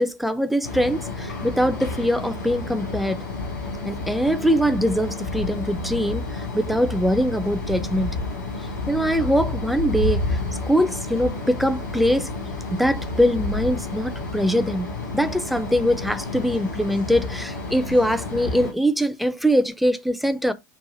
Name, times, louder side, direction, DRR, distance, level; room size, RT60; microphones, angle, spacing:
voice 1, 0.0-3.2 3.8-8.2 8.9-10.4 10.7-12.3 12.7-14.9 15.1-20.5, equal, ahead, 0.5 m, -22 dB
sound 1, 0.6-18.7, left 2 dB, 80° left, 1.4 m, -30 dB
4.1 x 2.4 x 3.9 m
figure-of-eight pair, 75°, 10 cm